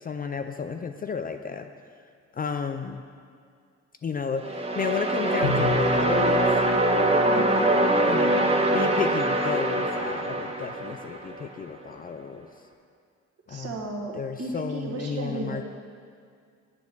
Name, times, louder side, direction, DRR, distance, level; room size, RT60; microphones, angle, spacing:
voice 1, 0.0-1.7 2.3-3.0 4.0-6.5 7.3-7.4 8.1-12.5 13.5-13.8 14.1-15.6, left 6 dB, 30° left, 7 dB, 0.4 m, -32 dB
sound 1, 4.4-11.4, right 1 dB, 20° right, 0.7 m, -23 dB
Bowed string instrument, 5.4-8.2, left 2 dB, 90° left, 1.4 m, -32 dB
voice 2, 7.2-7.7 13.5-15.6, right 2 dB, 55° right, 0 dB, 1.2 m, -34 dB
8.3 x 3.5 x 6.5 m, 2.2 s
cardioid pair, 90°, 30 cm